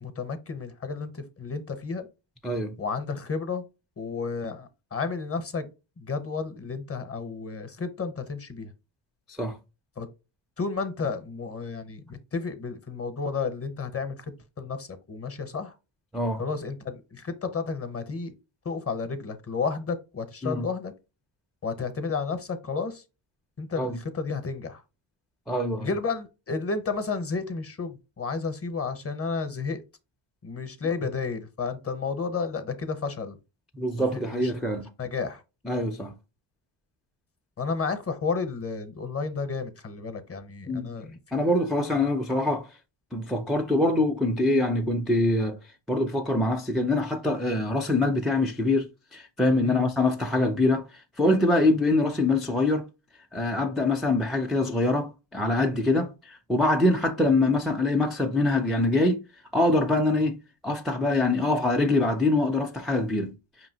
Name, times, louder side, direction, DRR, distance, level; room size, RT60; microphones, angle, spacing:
voice 1, 0.0-2.1 2.8-3.6 4.0-5.7 6.0-8.7 10.0-10.1 10.6-14.2 14.6-15.8 16.4-18.3 18.6-20.9 21.6-23.0 23.6-24.8 25.8-29.8 30.4-33.4 34.1-34.5 35.0-35.4 37.6-41.2 49.6-49.9 56.0-56.1, left 4 dB, 30° left, 0.8 m, -32 dB
voice 2, 2.4-2.8 9.3-9.6 16.1-16.4 20.4-20.7 23.8-24.0 25.5-25.9 33.7-34.9 35.6-36.1 40.7-40.9 41.3-42.7 43.1-45.6 45.9-50.9 51.2-52.9 53.3-59.2 59.5-60.4 60.6-63.3, left 2 dB, ahead, 0.3 m, -24 dB
5.3 x 2.9 x 2.7 m
cardioid pair, 110°, 49 cm